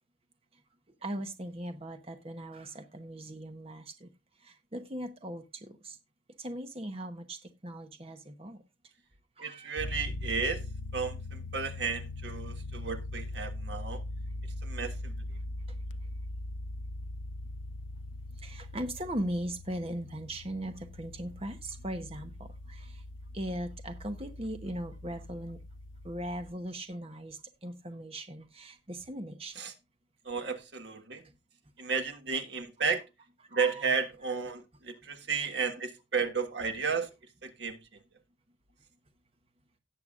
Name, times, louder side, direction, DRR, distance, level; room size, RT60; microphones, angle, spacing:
voice 1, 1.0-4.1 4.4-6.0 6.4-8.6 9.4-9.7 18.4-23.0 23.3-25.6 26.0-29.6 33.5-33.8, right 1 dB, 30° right, 1.0 m, -39 dB
voice 2, 9.4-10.6 10.9-14.0 14.6-15.1 29.6-29.7 30.2-31.2 31.8-33.1 33.5-37.1 37.4-37.8, right 5 dB, 65° right, 1.5 m, -33 dB
sound 1, 9.8-26.5, left 2 dB, 80° left, 0.6 m, -41 dB
18.0 x 6.9 x 2.5 m
head